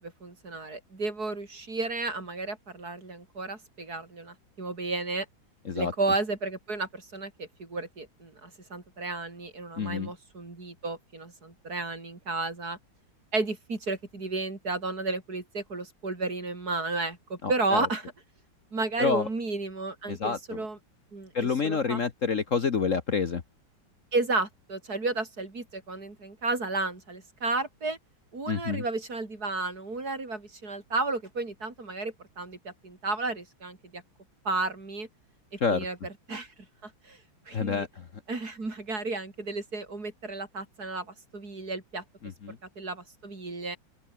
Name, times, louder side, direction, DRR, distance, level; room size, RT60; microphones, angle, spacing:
voice 1, 0.0-5.3 5.7-12.8 13.3-18.1 18.7-20.8 21.1-22.0 24.1-28.0 28.3-34.0 34.4-35.1 35.5-36.5 36.8-37.2 37.5-37.9 38.3-42.0 42.8-43.8, right 3 dB, 50° right, 4.7 m, -33 dB
voice 2, 9.8-10.1 17.4-17.9 19.0-19.3 20.1-20.6 21.3-23.4 28.5-28.8 35.6-35.8 37.5-38.1 42.2-42.6, left 5 dB, 45° left, 1.5 m, -28 dB
open air
omnidirectional pair, 2.1 m